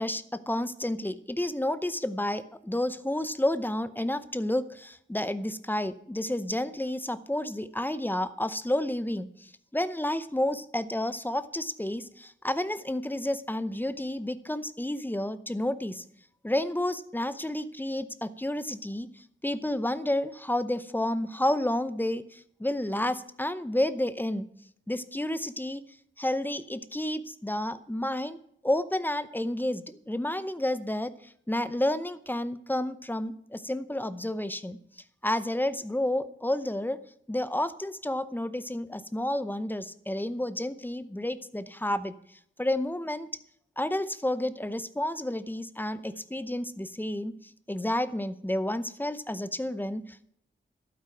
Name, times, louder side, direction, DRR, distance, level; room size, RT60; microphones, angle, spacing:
voice 1, 0.0-16.0 16.4-24.5 24.9-25.8 26.2-28.4 28.6-34.8 35.2-37.0 37.3-42.1 42.6-43.3 43.8-50.3, left 1 dB, 10° left, 13 dB, 0.7 m, -30 dB
12.0 x 9.1 x 5.9 m, 0.70 s
wide cardioid pair, 115°, 21 cm